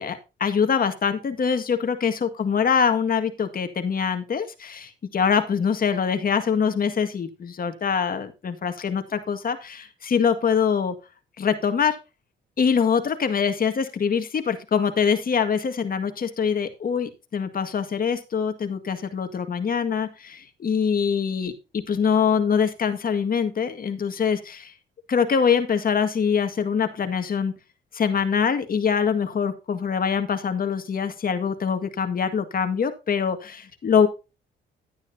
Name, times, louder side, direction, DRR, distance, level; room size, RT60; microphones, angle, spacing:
voice 1, 0.0-11.0 11.4-12.0 12.6-24.7 25.1-27.5 27.9-34.1, left 6 dB, 45° left, 8 dB, 1.9 m, -24 dB
11.5 x 9.8 x 2.7 m, 0.28 s
cardioid pair, 90°, 20 cm